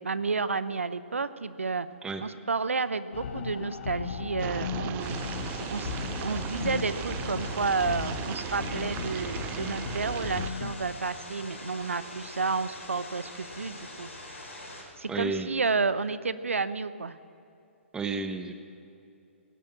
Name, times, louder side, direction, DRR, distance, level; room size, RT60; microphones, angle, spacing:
voice 1, 0.0-1.9 2.2-5.2 5.7-5.9 6.2-17.2, right 4 dB, 85° right, 15 dB, 0.7 m, -31 dB
sound 1, 3.1-10.7, left 6 dB, 60° left, 0.9 m, -36 dB
sound 2, 4.4-10.5, right 14 dB, 25° right, 0.4 m, -38 dB
sound 3, 5.0-14.8, left 2 dB, 85° left, 4.0 m, -43 dB
voice 2, 15.1-15.5 17.9-18.5, right 4 dB, 10° right, 8 dB, 0.9 m, -31 dB
17.5 x 8.7 x 7.9 m, 2.6 s
figure-of-eight pair, 125°, 7 cm